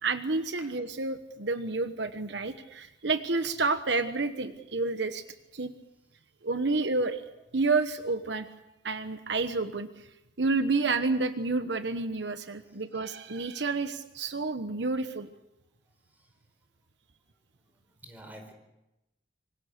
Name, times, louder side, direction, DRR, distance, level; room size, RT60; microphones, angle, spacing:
voice 1, 0.0-5.2 5.5-5.7 6.4-7.2 7.5-8.5 8.8-10.1 10.4-15.3, right 3 dB, 70° right, 9 dB, 1.1 m, -29 dB
voice 2, 16.0-16.4 17.7-18.5, right 1 dB, 10° right, 4 dB, 4.5 m, -50 dB
26.0 x 24.5 x 6.6 m, 0.94 s
head